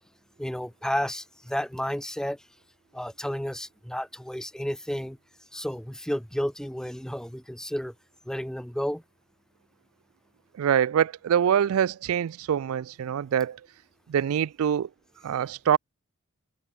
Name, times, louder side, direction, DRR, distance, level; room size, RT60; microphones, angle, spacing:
voice 1, 0.4-2.5 2.9-5.2 5.5-7.9 8.2-9.0, equal, 5° left, 1.0 m, -32 dB
voice 2, 10.6-13.6 14.1-14.9 15.2-15.8, right 9 dB, 75° right, 0.3 m, -24 dB
head